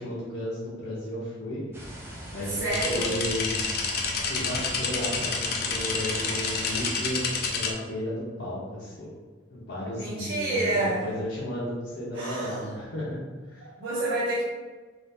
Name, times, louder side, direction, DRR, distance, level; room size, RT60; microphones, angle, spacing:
voice 1, 0.0-1.6 2.3-3.5 4.1-9.1 9.5-13.2 13.5-13.7, equal, 65° left, -9 dB, 0.8 m, -34 dB
sound 1, 1.7-6.9, equal, 10° right, 0.5 m, -40 dB
voice 2, 2.5-3.1 10.0-11.1 12.1-12.7 13.6-14.4, right 2 dB, 75° right, -6 dB, 0.6 m, -28 dB
sound 2, 2.7-7.7, left 4 dB, 50° left, 0.4 m, -29 dB
3.3 x 2.5 x 2.7 m, 1.4 s
head